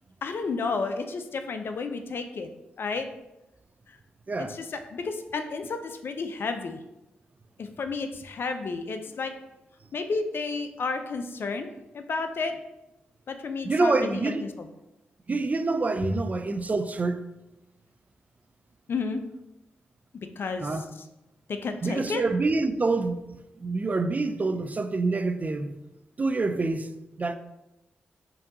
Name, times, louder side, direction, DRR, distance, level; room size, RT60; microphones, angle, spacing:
voice 1, 0.2-2.5 2.8-3.1 4.4-6.8 7.6-9.3 9.9-12.6 13.3-14.7 18.9-19.2 20.1-20.7 21.5-22.2, left 4 dB, 60° left, 0.4 m, -32 dB
voice 2, 13.6-14.4 15.3-17.2 20.6-20.9 21.8-23.2 23.6-25.8 26.2-26.9 27.2-27.4, right 3 dB, 40° right, 0.3 m, -26 dB
5.2 x 2.7 x 2.6 m
supercardioid pair, 45°, 4 cm